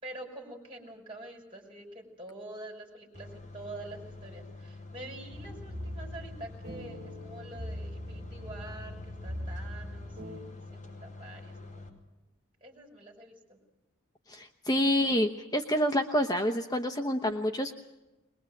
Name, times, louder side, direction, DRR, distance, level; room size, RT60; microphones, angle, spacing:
voice 1, 0.0-11.8 12.6-13.6, right 2 dB, 25° right, 1 dB, 5.8 m, -46 dB
sound 1, 3.1-11.9, left 2 dB, 35° left, 4.6 m, -47 dB
sound 2, 5.3-10.4, equal, 40° right, 3.2 m, -41 dB
voice 2, 14.3-17.7, equal, 20° left, 5 dB, 0.9 m, -28 dB
22.0 x 21.5 x 7.8 m, 1.0 s
head